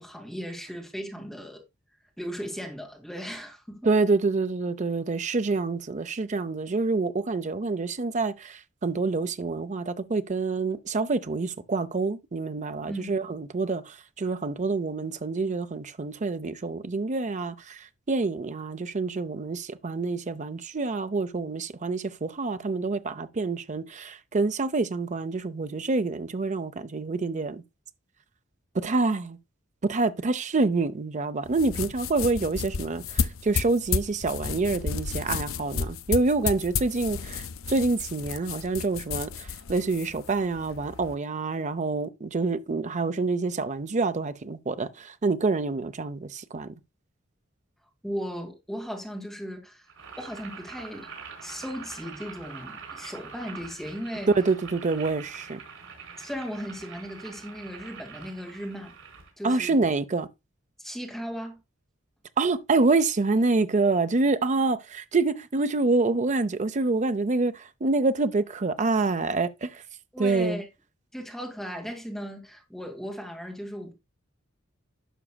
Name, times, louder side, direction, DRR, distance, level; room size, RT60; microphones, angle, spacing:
voice 1, 0.0-1.6 2.2-3.8 12.9-13.2 48.0-49.9 50.2-51.1 51.4-54.3 56.2-58.9 59.4-59.8 60.8-61.6 70.1-70.7 71.1-73.9, equal, ahead, 2.2 m, -36 dB
voice 2, 3.8-17.8 18.1-27.6 28.7-29.4 29.8-46.7 54.4-55.6 59.4-60.3 62.4-69.8 70.2-70.6, right 3 dB, 35° right, 0.6 m, -27 dB
sound 1, 31.5-41.1, left 6 dB, 80° left, 0.6 m, -32 dB
Boiling, 49.9-59.3, right 5 dB, 80° right, 3.9 m, -44 dB
11.0 x 6.0 x 2.3 m
head